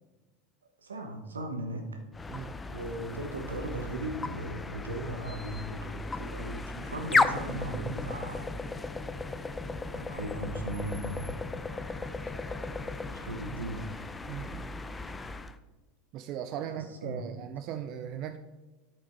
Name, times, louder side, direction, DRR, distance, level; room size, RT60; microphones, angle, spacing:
voice 1, 0.8-2.0 2.7-8.5 9.9-11.4 11.7-12.2 12.5-13.9 16.6-17.4, right 1 dB, 90° right, 5 dB, 1.1 m, -38 dB
sound 1, 2.1-15.6, left 3 dB, 15° left, 0.5 m, -35 dB
voice 2, 14.3-14.7 16.1-18.4, right 10 dB, 50° right, 8 dB, 0.4 m, -38 dB
9.6 x 5.3 x 4.4 m, 1.2 s
hypercardioid pair, 85°, 0 cm